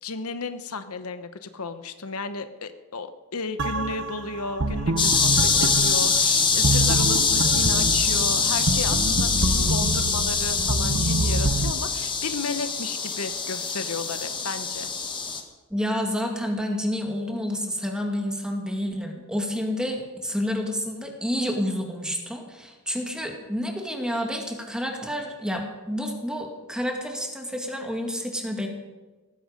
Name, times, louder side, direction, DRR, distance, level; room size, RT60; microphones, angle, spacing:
voice 1, 0.0-14.9, left 3 dB, 90° left, 10 dB, 1.1 m, -33 dB
sound 1, 3.6-11.7, right 2 dB, 55° right, 1.0 m, -26 dB
sound 2, 5.0-15.4, left 5 dB, 20° left, 1.6 m, -24 dB
voice 2, 15.7-28.7, equal, 5° right, 2 dB, 2.3 m, -29 dB
18.0 x 15.0 x 5.3 m, 1.3 s
head